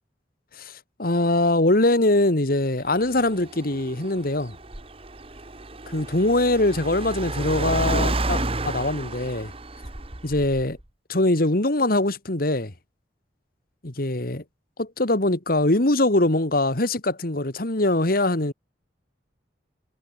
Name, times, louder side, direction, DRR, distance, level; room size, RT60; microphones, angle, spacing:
voice 1, 1.0-4.6 5.9-9.5 10.2-10.8 11.1-12.7 13.8-14.4 14.8-18.5, left 2 dB, 50° left, 2.0 m, -22 dB
Car, 2.9-10.8, right 2 dB, 30° right, 1.8 m, -31 dB
head